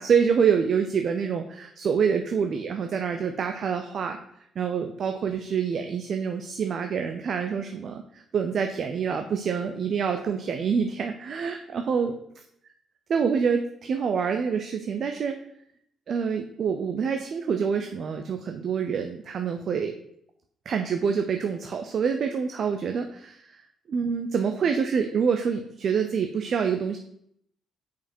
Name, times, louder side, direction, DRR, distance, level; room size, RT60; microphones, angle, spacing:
voice 1, 0.0-4.2 4.6-12.1 13.1-15.4 16.1-19.9 20.7-23.6 23.9-27.0, right 6 dB, 55° right, 5 dB, 0.6 m, -26 dB
5.5 x 5.0 x 4.4 m, 0.72 s
cardioid pair, 90°, 0 cm